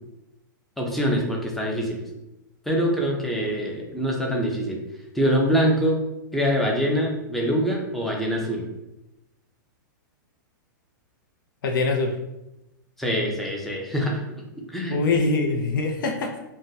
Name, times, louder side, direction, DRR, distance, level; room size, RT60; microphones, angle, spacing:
voice 1, 0.8-2.0 2.7-4.8 5.1-6.0 6.3-8.7 13.0-14.2 14.7-15.0, equal, ahead, -2 dB, 0.5 m, -24 dB
voice 2, 11.6-12.1 14.9-16.4, left 3 dB, 75° left, 2 dB, 0.5 m, -23 dB
2.5 x 2.2 x 3.9 m, 0.93 s
hypercardioid pair, 140°, 11 cm